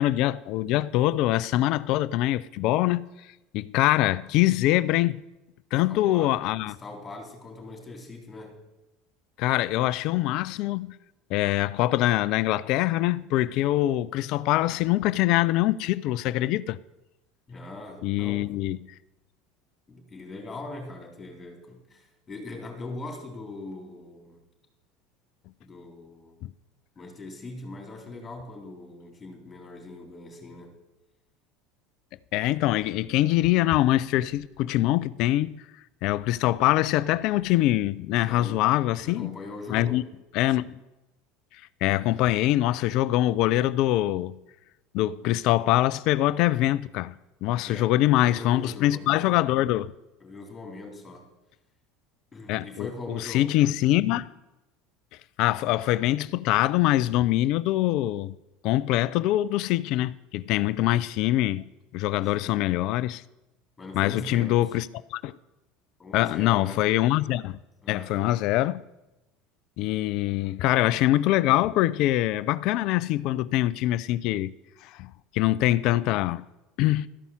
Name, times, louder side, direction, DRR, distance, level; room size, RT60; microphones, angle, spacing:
voice 1, 0.0-3.3 3.5-5.2 5.7-6.8 9.4-11.0 11.3-16.8 18.0-18.8 26.4-26.5 32.3-35.6 36.0-39.3 39.7-40.0 40.3-40.8 41.5-44.4 44.9-47.1 47.4-49.9 52.5-54.3 55.4-58.4 58.6-61.6 61.9-63.2 63.9-65.3 66.1-67.6 67.9-68.8 69.8-74.5 74.8-76.5 76.8-77.1, left 15 dB, 60° left, 0.3 m, -24 dB
voice 2, 5.7-8.6 17.5-18.5 19.9-24.4 25.6-26.4 27.0-30.8 38.1-38.7 39.0-40.1 47.7-47.9 48.2-49.4 50.2-51.3 52.3-53.6 62.4-62.6 63.8-64.7 66.0-66.9 67.8-68.3, left 2 dB, 25° left, 3.4 m, -41 dB
13.0 x 5.4 x 7.3 m
hypercardioid pair, 80°, 0 cm